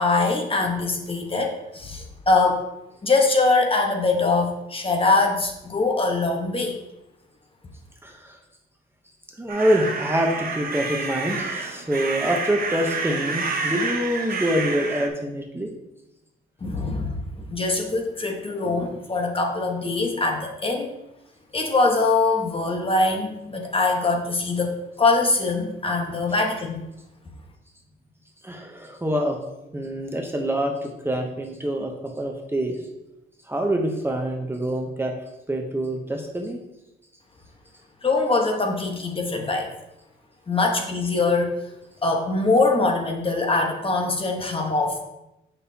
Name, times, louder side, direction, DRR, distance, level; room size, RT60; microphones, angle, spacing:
voice 1, 0.0-2.6 3.0-6.8 16.6-17.1 17.5-21.0 21.5-26.9 38.0-39.7 40.5-41.5 42.0-45.0, left 3 dB, 25° left, 2 dB, 1.1 m, -23 dB
voice 2, 8.0-8.4 9.4-15.7 28.4-29.4 29.7-32.8 33.5-35.1 35.5-36.6, equal, 10° right, 1 dB, 0.8 m, -25 dB
sound 1, 9.5-15.1, right 4 dB, 45° right, 0.9 m, -29 dB
6.5 x 5.6 x 2.8 m, 0.91 s
cardioid pair, 90°, 20 cm